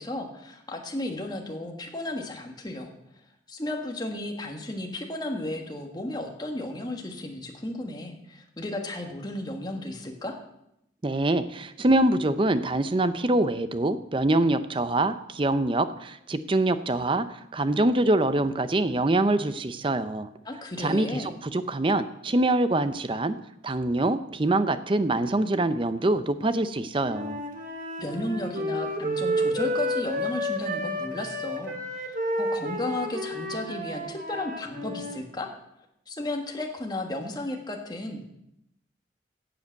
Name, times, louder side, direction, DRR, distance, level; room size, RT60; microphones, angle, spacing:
voice 1, 0.0-2.9 3.5-10.4 20.4-21.3 28.0-35.5 36.1-38.2, left 1 dB, 25° left, 3 dB, 1.6 m, -34 dB
voice 2, 11.0-17.3 17.5-20.3 20.8-23.3 23.6-27.4, right 2 dB, 30° right, 12 dB, 0.6 m, -24 dB
Wind instrument woodwind instrument, 27.0-35.1, equal, 50° right, 1.7 m, -31 dB
10.5 x 7.7 x 8.1 m, 0.82 s
head